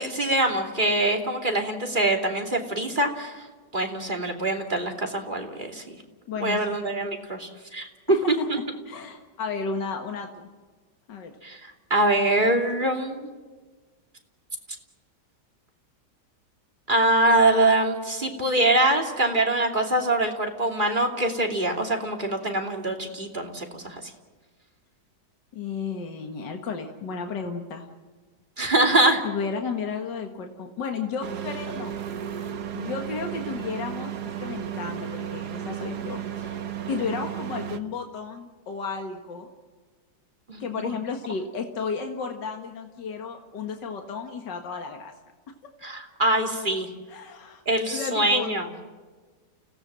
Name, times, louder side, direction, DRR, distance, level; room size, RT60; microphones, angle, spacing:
voice 1, 0.0-3.4 3.7-5.8 6.4-8.6 11.4-13.3 16.9-24.0 28.6-29.2 40.5-40.9 45.8-46.9 47.7-48.7, right 1 dB, 25° right, 2 dB, 3.0 m, -24 dB
voice 2, 6.3-6.7 8.1-10.5 11.1-11.3 25.5-27.9 29.2-32.0 32.7-36.6 36.9-39.5 40.6-45.1 47.1-47.6 47.9-48.5, left 5 dB, 75° left, 4 dB, 2.3 m, -33 dB
sound 1, 31.2-37.8, right 9 dB, 65° right, 1.7 m, -34 dB
29.5 x 17.5 x 7.6 m, 1.4 s
omnidirectional pair, 1.9 m